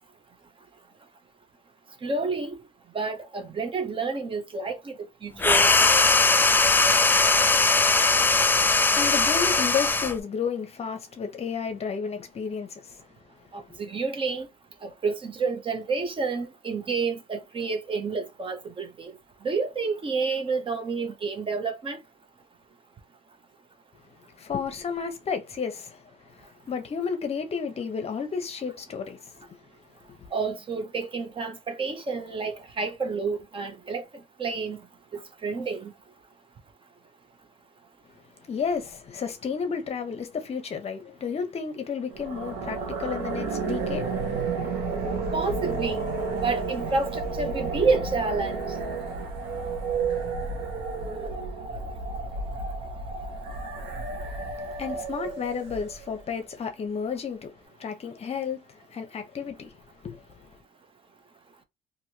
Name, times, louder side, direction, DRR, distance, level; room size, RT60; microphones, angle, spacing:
voice 1, 2.0-2.6 2.9-4.9 5.2-5.7 13.5-14.5 14.8-19.1 19.4-22.0 30.3-34.0 34.4-34.8 35.4-35.9 45.3-46.1 46.4-48.7, right 4 dB, 30° right, 0.7 m, -29 dB
sound 1, 5.4-10.2, left 3 dB, 10° left, 0.3 m, -20 dB
voice 2, 8.4-13.0 13.7-13.8 24.4-29.3 30.2-30.3 38.5-44.1 44.6-44.7 54.8-57.5 57.8-60.5, left 6 dB, 35° left, 0.7 m, -32 dB
sound 2, 42.1-56.2, right 4 dB, 85° right, 0.9 m, -31 dB
2.9 x 2.7 x 2.8 m
cardioid pair, 110°, 17 cm